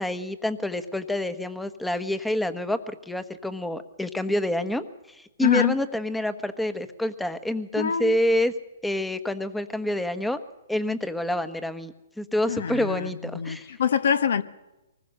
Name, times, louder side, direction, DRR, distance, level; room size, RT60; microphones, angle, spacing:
voice 1, 0.0-8.5 8.8-10.4 10.7-13.7, left 1 dB, 5° left, 1.2 m, -27 dB
voice 2, 5.4-5.8 7.8-8.2 12.5-14.4, left 7 dB, 70° left, 1.5 m, -25 dB
23.5 x 20.5 x 6.6 m
hypercardioid pair, 145°, 0 cm